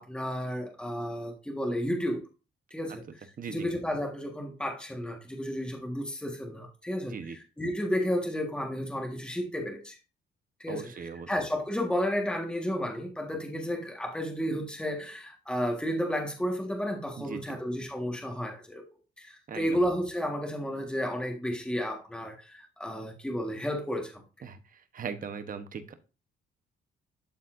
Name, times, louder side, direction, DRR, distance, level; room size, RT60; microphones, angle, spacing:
voice 1, 0.0-2.2 2.7-10.0 10.6-18.9 19.2-24.2, equal, 5° left, 2 dB, 1.5 m, -32 dB
voice 2, 3.4-3.7 7.1-7.4 10.7-11.3 17.2-17.6 19.5-19.7 24.4-24.6 24.9-25.9, right 6 dB, 45° right, 9 dB, 1.0 m, -38 dB
12.0 x 4.1 x 2.6 m, 0.32 s
cardioid pair, 90°, 20 cm